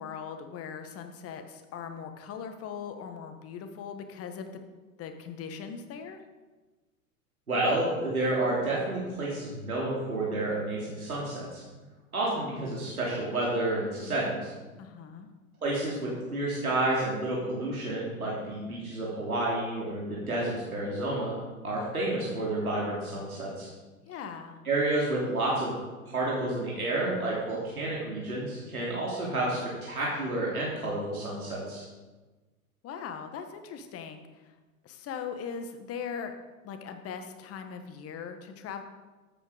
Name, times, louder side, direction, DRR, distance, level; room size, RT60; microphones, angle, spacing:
voice 1, 0.0-4.5 5.0-6.2 14.8-15.3 24.1-24.6 32.8-34.5 34.8-36.4 36.6-38.8, left 7 dB, 35° left, 7 dB, 1.6 m, -40 dB
voice 2, 7.5-11.6 12.1-14.5 15.6-21.3 21.6-23.7 24.6-25.7 26.1-31.8, right 2 dB, 85° right, -5 dB, 3.3 m, -30 dB
13.0 x 8.9 x 5.1 m, 1.2 s
figure-of-eight pair, 90°, 43 cm